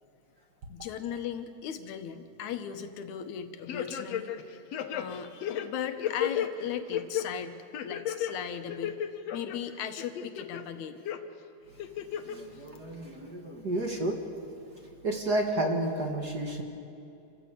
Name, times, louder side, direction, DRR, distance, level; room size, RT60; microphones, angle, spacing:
voice 1, 0.7-9.0 9.3-11.0, left 8 dB, 85° left, 8 dB, 2.5 m, -38 dB
sound 1, 3.7-4.4 4.7-6.5 6.9-7.3 7.7-8.3 8.7-9.6 10.0-10.6 11.1-11.2 11.8-12.4 12.8-12.9, left 10 dB, 70° left, 2.1 m, -33 dB
voice 2, 12.2-14.2 15.0-16.6, right 1 dB, 40° right, 2 dB, 1.9 m, -31 dB
28.0 x 14.5 x 8.3 m, 2.7 s
omnidirectional pair, 3.3 m